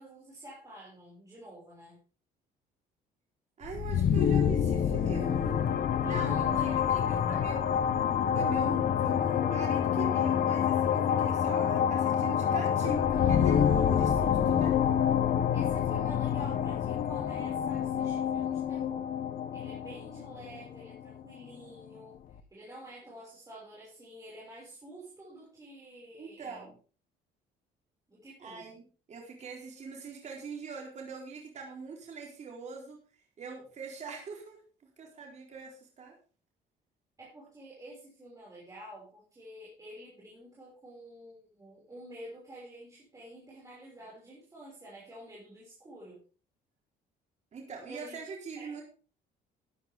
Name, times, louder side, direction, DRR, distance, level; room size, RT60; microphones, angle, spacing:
voice 1, 0.0-2.0 6.0-7.8 15.5-19.1 19.5-22.2 22.5-26.7 28.1-28.8 37.2-46.2 47.9-48.2 48.6-48.8, right 1 dB, 20° right, -6 dB, 6.2 m, -48 dB
sound 1, 3.6-21.3, left 8 dB, 55° left, 1.2 m, -27 dB
voice 2, 3.6-5.6 6.0-7.8 8.3-14.8 26.1-26.7 28.4-33.0 33.4-34.6 35.0-36.1 47.5-48.8, right 5 dB, 45° right, -1 dB, 4.1 m, -42 dB
13.0 x 11.0 x 3.7 m, 0.37 s
cardioid pair, 110°, 17 cm